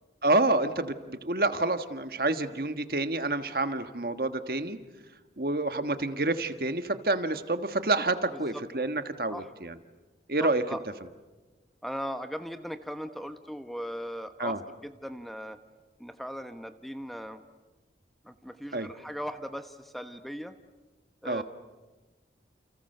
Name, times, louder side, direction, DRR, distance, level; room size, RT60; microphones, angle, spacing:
voice 1, 0.2-4.8 5.4-9.8 10.3-10.6 14.4-14.6 18.7-18.9 21.2-21.4, right 2 dB, 55° right, 9 dB, 1.4 m, -28 dB
voice 2, 10.4-10.8 11.8-14.6 14.8-15.6 16.0-17.4 18.2-20.5 21.2-21.4, equal, ahead, 8 dB, 1.0 m, -38 dB
29.5 x 29.5 x 6.7 m, 1.2 s
head